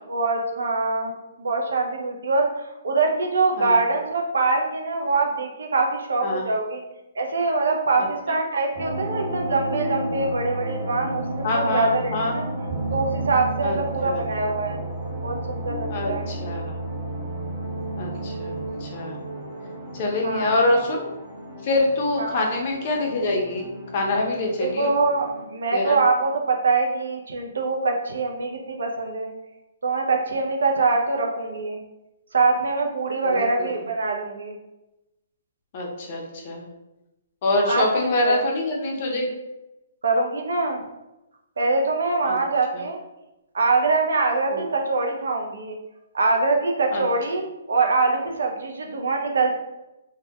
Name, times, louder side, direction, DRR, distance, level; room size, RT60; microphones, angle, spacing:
voice 1, 0.1-1.1 1.4-6.8 7.2-12.5 12.9-14.8 15.2-16.3 20.2-20.6 22.2-22.4 24.6-29.3 29.8-31.8 32.3-34.6 37.7-38.4 40.0-40.8 41.6-43.0 43.5-45.8 46.1-49.6, right 3 dB, 85° right, 2 dB, 0.5 m, -24 dB
voice 2, 8.0-8.4 11.4-12.4 13.6-13.8 14.0-14.3 15.9-16.7 18.0-19.2 19.9-21.1 21.6-23.6 23.9-24.9 25.7-26.0 33.2-33.7 35.7-36.7 37.4-39.3 42.2-42.4 44.5-44.6 46.9-47.0, left 2 dB, 35° left, 0 dB, 0.5 m, -25 dB
sound 1, 8.7-25.4, right 1 dB, 30° right, 0.8 m, -32 dB
2.1 x 2.1 x 2.7 m, 0.96 s
hypercardioid pair, 160°, 0 cm